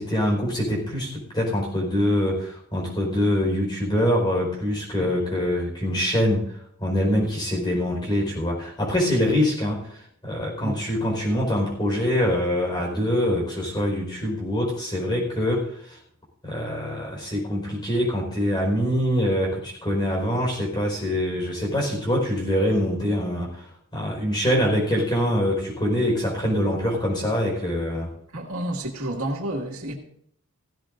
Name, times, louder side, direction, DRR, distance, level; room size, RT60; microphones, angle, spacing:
voice 1, 0.0-6.4 6.8-16.0 16.4-23.6 23.9-28.1, equal, 20° left, -2 dB, 4.7 m, -24 dB
voice 2, 28.3-29.9, right 1 dB, 85° right, 0 dB, 2.1 m, -30 dB
16.5 x 16.0 x 2.6 m, 0.68 s
head